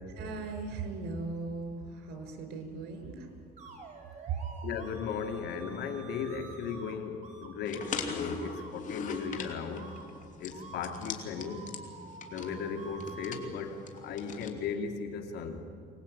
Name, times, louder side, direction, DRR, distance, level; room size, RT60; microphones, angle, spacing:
voice 1, 0.1-3.3 4.3-4.4, right 4 dB, 80° right, 6 dB, 5.1 m, -38 dB
sound 1, 3.6-7.0 7.2-7.5 7.8-8.0 8.4-8.7 9.1-9.4 9.8-10.0 10.5-13.5, right 4 dB, 45° right, 5.7 m, -48 dB
voice 2, 4.6-9.9 10.4-11.7 12.3-15.6, left 6 dB, 80° left, 4 dB, 2.8 m, -36 dB
sound 2, 7.7-14.5, left 5 dB, 50° left, 2.9 m, -41 dB
25.0 x 19.5 x 8.8 m, 2.4 s
cardioid pair, 110°, 17 cm